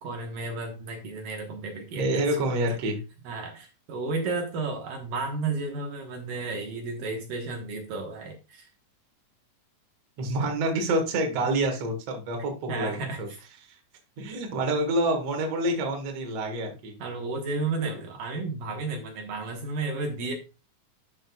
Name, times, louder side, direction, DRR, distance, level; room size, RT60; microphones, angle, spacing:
voice 1, 0.0-2.8 3.3-8.7 12.7-13.4 17.0-20.3, right 3 dB, 70° right, 2 dB, 2.7 m, -33 dB
voice 2, 1.9-3.0 10.2-13.3 14.2-16.9 17.8-17.9, right 1 dB, 55° right, 2 dB, 2.4 m, -27 dB
11.5 x 6.3 x 2.3 m, 0.29 s
omnidirectional pair, 4.2 m